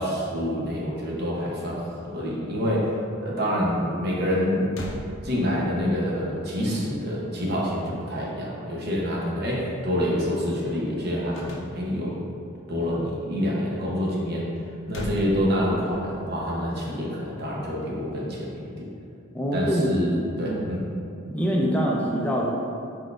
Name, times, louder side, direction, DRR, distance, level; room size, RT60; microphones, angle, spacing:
voice 1, 0.0-4.7 5.2-12.2 12.7-14.4 14.9-18.8 19.5-20.1 20.4-20.8, equal, 50° right, -4 dB, 0.8 m, -27 dB
sound 1, 4.3-4.4 4.7-5.9 11.3-12.2 14.6-16.1, left 1 dB, 70° left, 0.5 m, -38 dB
voice 2, 19.3-19.9 20.4-20.8 21.3-22.5, equal, 5° left, -2 dB, 0.4 m, -25 dB
4.5 x 4.3 x 2.4 m, 2.4 s
head